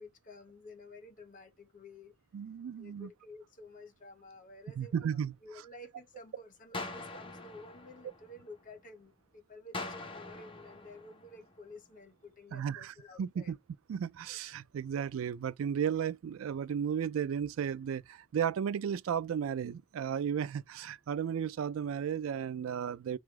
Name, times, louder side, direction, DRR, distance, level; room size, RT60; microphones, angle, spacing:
voice 1, 0.0-2.2 2.8-13.5, left 2 dB, 40° left, 1.2 m, -52 dB
voice 2, 2.3-3.1 4.8-5.3 12.5-13.6 13.9-23.2, right 8 dB, 85° right, 0.3 m, -34 dB
sound 1, 6.7-8.8 9.7-11.8, left 2 dB, 25° left, 0.9 m, -44 dB
4.7 x 2.4 x 4.5 m
head